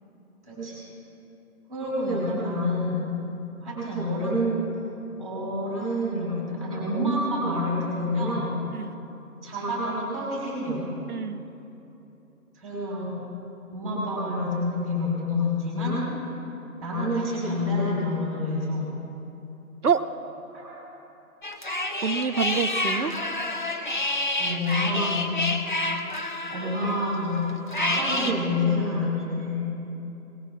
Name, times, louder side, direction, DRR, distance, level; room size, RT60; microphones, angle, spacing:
voice 1, 0.4-0.8 1.7-3.1 3.6-4.6 5.2-8.5 9.4-10.8 12.5-13.2 13.7-16.0 16.8-18.9 20.5-20.8 24.4-25.5 26.5-29.7, left 1 dB, ahead, -6 dB, 3.9 m, -28 dB
voice 2, 11.1-11.4 19.8-20.0 22.0-23.1, right 6 dB, 85° right, 7 dB, 0.8 m, -26 dB
sound 1, 21.4-28.3, left 2 dB, 35° left, 0.7 m, -29 dB
21.0 x 19.5 x 2.5 m, 3.0 s
figure-of-eight pair, 160°, 44 cm